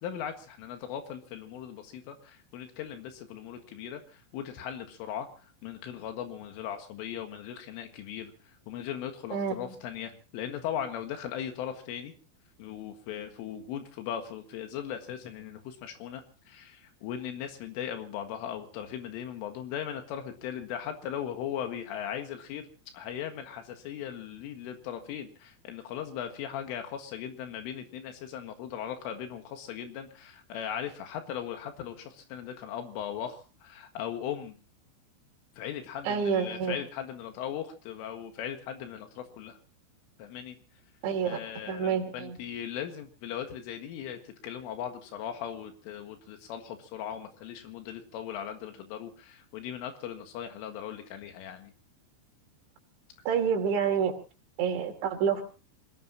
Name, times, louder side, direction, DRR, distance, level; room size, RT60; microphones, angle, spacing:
voice 1, 0.0-5.3 5.6-8.3 8.7-12.1 12.6-22.7 22.9-34.6 35.6-39.6 40.2-40.6 41.2-51.7, left 9 dB, 85° left, 5 dB, 4.3 m, -38 dB
voice 2, 9.3-9.7 36.0-36.8 41.0-41.4 41.7-42.4 53.3-54.1 54.6-55.4, right 7 dB, 70° right, 4 dB, 5.0 m, -28 dB
27.0 x 18.0 x 2.9 m, 0.35 s
omnidirectional pair, 5.6 m